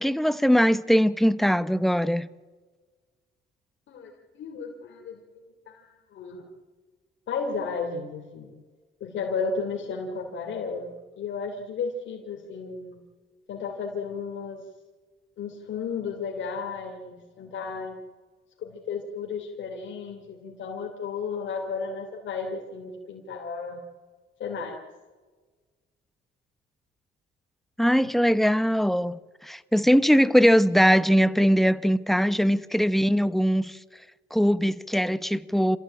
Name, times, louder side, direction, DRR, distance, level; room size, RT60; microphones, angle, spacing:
voice 1, 0.0-2.3 27.8-33.8 34.3-35.8, equal, ahead, 0.9 m, -21 dB
voice 2, 3.9-6.5 7.3-8.5 9.0-13.0 13.5-14.6 15.4-18.0 18.6-23.8 24.4-24.8, left 5 dB, 70° left, 3.2 m, -34 dB
28.0 x 15.0 x 8.8 m
cardioid pair, 90°, 20 cm